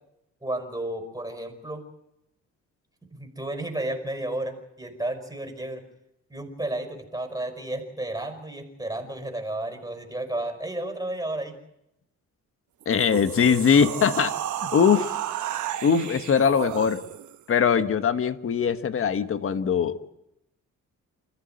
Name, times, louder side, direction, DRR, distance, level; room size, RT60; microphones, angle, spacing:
voice 1, 0.4-1.9 3.2-5.8 6.3-11.6, right 1 dB, 10° right, 5 dB, 5.3 m, -32 dB
voice 2, 12.8-14.4 14.6-15.2 15.8-17.0 17.5-20.1, left 7 dB, 45° left, 10 dB, 1.4 m, -21 dB
sound 1, 12.8-17.4, right 12 dB, 75° right, 1.3 m, -32 dB
28.5 x 14.5 x 9.1 m, 0.87 s
cardioid pair, 90°, 30 cm